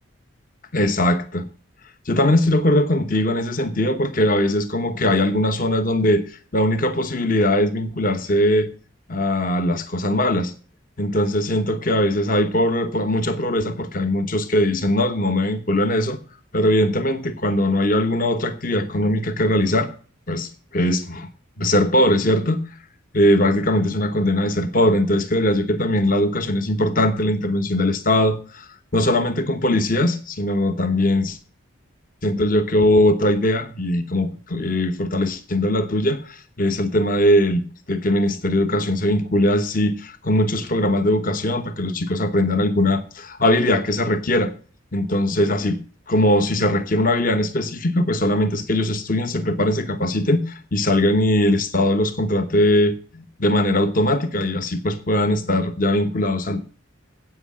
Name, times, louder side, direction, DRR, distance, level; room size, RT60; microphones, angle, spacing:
voice 1, 0.7-1.5 2.1-8.7 9.1-10.5 11.0-16.2 16.5-19.9 20.3-21.3 21.6-22.7 23.1-31.4 32.2-44.5 44.9-45.8 46.1-56.6, left 1 dB, 40° left, 9 dB, 1.0 m, -20 dB
8.4 x 7.9 x 7.2 m, 0.40 s
head